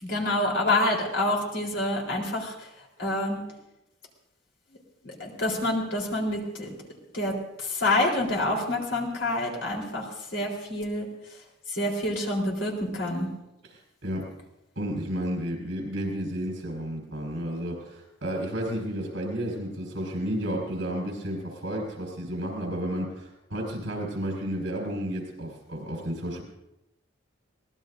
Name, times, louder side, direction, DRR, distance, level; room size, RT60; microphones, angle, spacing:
voice 1, 0.0-2.5 3.0-3.4 5.0-6.7 7.1-7.3 7.7-10.0 10.3-11.1 11.7-13.3, left 1 dB, 70° left, -1 dB, 3.9 m, -27 dB
voice 2, 13.6-14.3 14.8-26.4, equal, 65° right, 1 dB, 5.5 m, -32 dB
23.0 x 19.0 x 2.6 m, 0.90 s
head